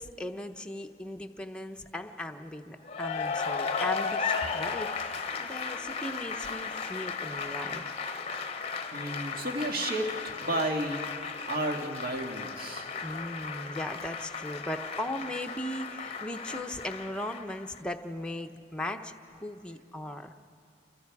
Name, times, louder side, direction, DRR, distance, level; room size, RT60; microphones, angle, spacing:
voice 1, 0.0-7.9 13.0-19.1 19.4-20.3, left 1 dB, 5° left, 4 dB, 0.8 m, -38 dB
Cheering / Applause, 2.8-17.8, left 5 dB, 35° left, 0.8 m, -35 dB
voice 2, 8.9-10.1 10.4-11.0 11.5-12.9, right 1 dB, 55° right, 2 dB, 2.0 m, -32 dB
28.5 x 24.0 x 4.8 m, 2.6 s
head